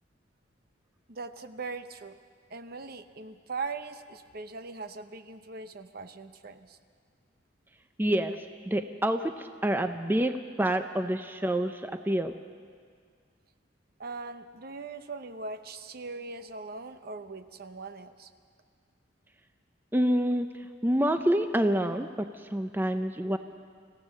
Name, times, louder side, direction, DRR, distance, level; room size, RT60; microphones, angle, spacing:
voice 1, 1.1-2.1 2.5-6.8 14.0-18.3, right 4 dB, 50° right, 9 dB, 0.9 m, -40 dB
voice 2, 8.0-12.3 19.9-20.5 20.8-23.4, right 1 dB, 10° right, 8 dB, 0.5 m, -27 dB
26.0 x 15.5 x 6.5 m, 2.1 s
head